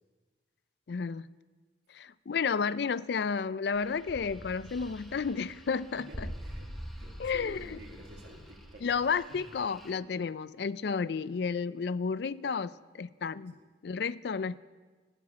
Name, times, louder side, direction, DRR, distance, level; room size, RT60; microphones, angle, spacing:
voice 1, 0.9-1.3 1.9-6.3 7.2-7.8 8.8-13.5 13.8-14.6, left 5 dB, 60° left, 17 dB, 0.4 m, -32 dB
sound 1, 3.7-9.9, equal, ahead, 1.1 m, -45 dB
voice 2, 5.9-9.0 9.4-9.5 13.5-13.6, equal, 65° right, 1 dB, 2.3 m, -51 dB
19.0 x 7.2 x 8.3 m, 1.4 s
head